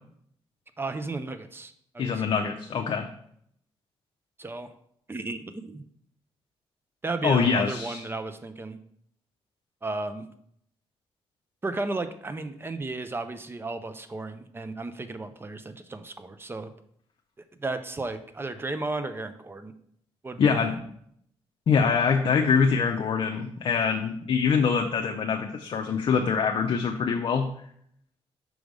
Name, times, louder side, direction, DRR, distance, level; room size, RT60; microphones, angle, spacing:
voice 1, 0.8-2.1 4.4-4.7 5.1-5.8 7.0-8.8 9.8-10.3 11.6-16.7 17.6-19.7 20.2-20.8, right 3 dB, 20° right, 10 dB, 0.6 m, -34 dB
voice 2, 2.0-3.1 7.2-8.0 20.4-20.8 21.7-27.5, left 6 dB, 55° left, 3 dB, 0.6 m, -24 dB
6.1 x 3.4 x 5.2 m, 0.68 s
cardioid pair, 90°, 10 cm